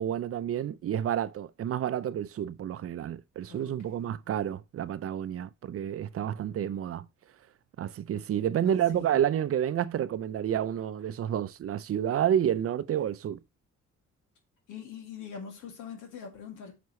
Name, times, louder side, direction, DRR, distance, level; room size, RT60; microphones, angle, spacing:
voice 1, 0.0-7.1 7.8-13.4, right 10 dB, 50° right, 0.5 m, -29 dB
voice 2, 3.5-4.2 8.7-9.2 14.7-16.8, left 7 dB, 85° left, 2.4 m, -44 dB
9.4 x 6.0 x 3.1 m
cardioid pair, 90°, 30 cm